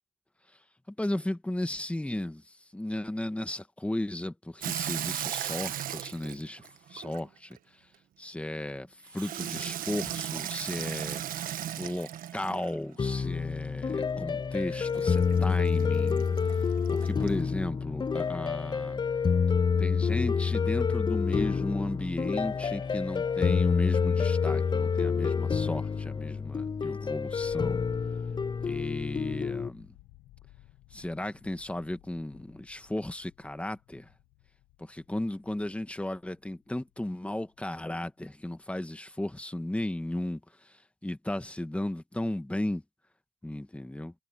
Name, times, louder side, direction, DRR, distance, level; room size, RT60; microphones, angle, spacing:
voice 1, 1.0-2.4 2.7-7.6 8.2-11.2 11.8-16.3 16.9-19.0 19.8-27.8 28.6-29.9 30.9-34.1 34.8-42.8 43.4-44.1, left 1 dB, 10° left, 1.7 m, -35 dB
Water tap faucet / Sink (filling or washing), 4.6-7.6 9.1-12.9 14.9-17.4, right 11 dB, 70° right, 1.5 m, -37 dB
sound 1, 13.0-29.7, left 6 dB, 30° left, 0.6 m, -28 dB
sound 2, 27.3-37.3 37.5-38.3, left 17 dB, 90° left, 1.2 m, -53 dB
supercardioid pair, 75°, 15 cm